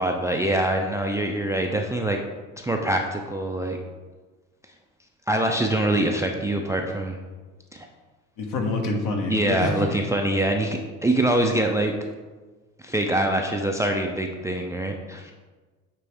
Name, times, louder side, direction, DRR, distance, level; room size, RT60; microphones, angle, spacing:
voice 1, 0.0-2.2 2.6-3.8 5.3-7.2 7.7-7.9 9.3-11.9 12.8-15.3, right 1 dB, 10° right, 2 dB, 0.5 m, -24 dB
voice 2, 8.4-10.0, left 3 dB, 50° left, 2 dB, 1.3 m, -27 dB
8.8 x 3.4 x 3.4 m, 1.3 s
figure-of-eight pair, 60°, 40 cm